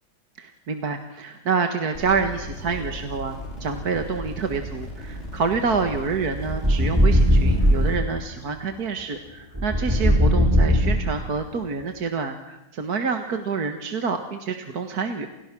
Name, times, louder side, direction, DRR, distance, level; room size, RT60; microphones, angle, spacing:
voice 1, 0.4-15.3, right 5 dB, 60° right, 6 dB, 2.1 m, -27 dB
sound 1, 1.9-8.0, equal, 40° left, 6.1 m, -36 dB
sound 2, 6.5-8.0 9.5-11.4, equal, 10° right, 4.6 m, -19 dB
29.5 x 29.0 x 6.2 m, 0.94 s
omnidirectional pair, 1.9 m